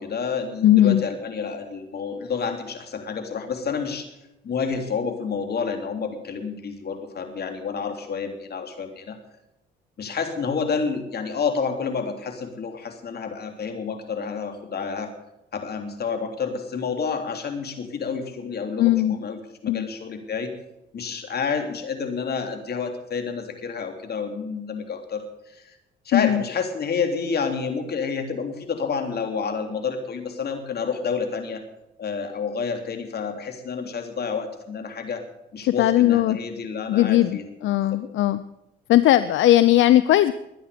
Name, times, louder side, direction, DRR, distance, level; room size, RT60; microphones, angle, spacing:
voice 1, 0.0-4.1 4.4-9.2 10.0-15.1 15.5-20.5 20.9-25.8 26.0-31.6 32.0-35.2 35.5-37.5 37.9-38.0, left 5 dB, 55° left, 6 dB, 3.3 m, -29 dB
voice 2, 0.6-1.0 18.8-19.2 19.7-19.9 26.1-26.4 35.8-36.4 36.9-38.4 38.9-40.3, left 13 dB, 75° left, 14 dB, 0.7 m, -18 dB
22.5 x 9.7 x 5.2 m, 0.89 s
cardioid pair, 90°, 20 cm